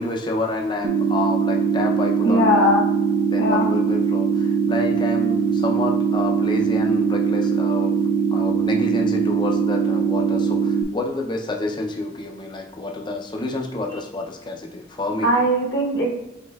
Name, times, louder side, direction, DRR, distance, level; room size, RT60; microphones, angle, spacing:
voice 1, 0.0-2.8 3.3-7.9 8.3-15.3, left 2 dB, 25° left, 2 dB, 0.5 m, -28 dB
sound 1, 0.8-10.8, right 6 dB, 55° right, 0.4 m, -21 dB
voice 2, 2.2-2.8 3.4-3.6 13.9-14.0 15.2-16.1, left 1 dB, 60° left, -2 dB, 0.9 m, -19 dB
5.2 x 3.6 x 2.3 m, 0.94 s
head